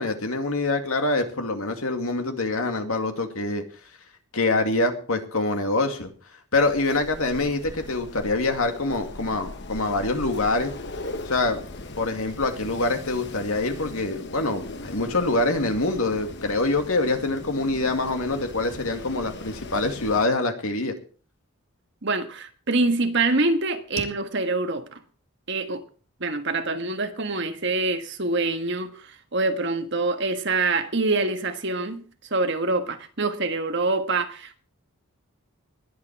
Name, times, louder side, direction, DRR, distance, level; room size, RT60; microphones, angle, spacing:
voice 1, 0.0-3.6 4.3-6.1 6.5-10.7 11.3-11.6 11.9-21.0, left 2 dB, 70° left, 2.3 m, -25 dB
Wind, 6.5-20.3, left 2 dB, 50° left, 1.1 m, -39 dB
voice 2, 22.0-25.0 25.5-25.8 26.2-32.0 32.3-34.6, right 3 dB, 55° right, 1.5 m, -25 dB
20.5 x 8.7 x 4.7 m
head